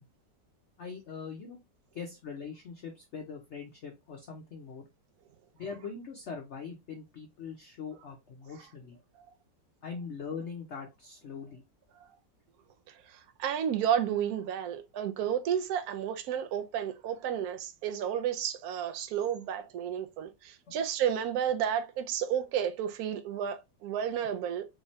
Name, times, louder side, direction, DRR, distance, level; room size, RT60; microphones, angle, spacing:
voice 1, 0.8-1.6 1.9-4.8 5.5-9.0 9.8-11.6 20.7-20.8, left 5 dB, 70° left, 0.6 m, -42 dB
voice 2, 12.9-24.6, right 9 dB, 70° right, 1.0 m, -32 dB
3.5 x 3.1 x 2.7 m
omnidirectional pair, 1.9 m